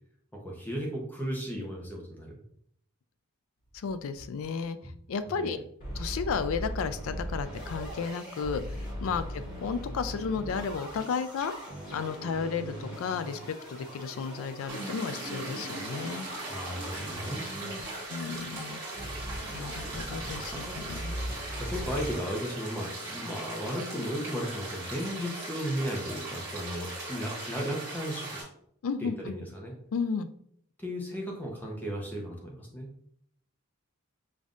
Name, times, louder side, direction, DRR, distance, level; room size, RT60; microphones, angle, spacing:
voice 1, 0.3-2.4 4.8-4.9 5.4-5.6 9.1-9.2 16.5-17.8 20.5-20.9 21.5-28.4 29.0-29.7 30.8-32.9, equal, 10° left, -1 dB, 0.7 m, -35 dB
voice 2, 3.7-4.8 5.1-5.6 5.9-8.6 9.0-11.5 11.9-13.4 13.7-16.3 18.1-18.8 19.5-21.2 28.8-29.3 29.9-30.3, left 5 dB, 65° left, 11 dB, 0.3 m, -33 dB
sound 1, 3.7-4.6 4.9-5.0 5.3-5.4 5.8-22.2, equal, 40° left, 1.3 m, -39 dB
sound 2, 14.7-28.4, right 2 dB, 15° right, 1.5 m, -39 dB
5.2 x 2.6 x 2.4 m, 0.66 s
head